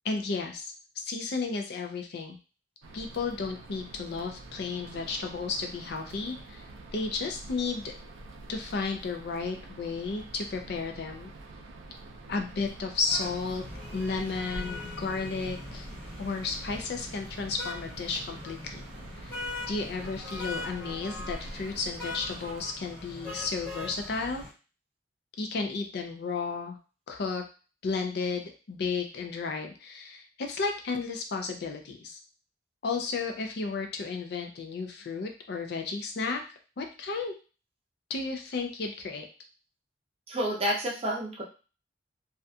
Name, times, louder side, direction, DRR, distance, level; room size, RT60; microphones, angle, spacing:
voice 1, 0.0-2.4 2.9-6.6 6.9-7.9 8.5-11.3 12.3-13.6 13.9-15.9 16.2-18.8 19.2-19.4 19.7-24.4 25.4-26.8 27.1-27.4 27.8-32.2 32.8-36.4 36.8-37.3 38.1-39.3, left 4 dB, 55° left, 4 dB, 0.4 m, -33 dB
sound 1, 2.8-22.6, right 2 dB, 90° right, 0.4 m, -46 dB
sound 2, 13.1-24.5, left 2 dB, 10° left, 0.9 m, -41 dB
voice 2, 40.3-41.4, equal, 30° right, -2 dB, 0.6 m, -29 dB
2.4 x 2.2 x 2.6 m, 0.34 s
head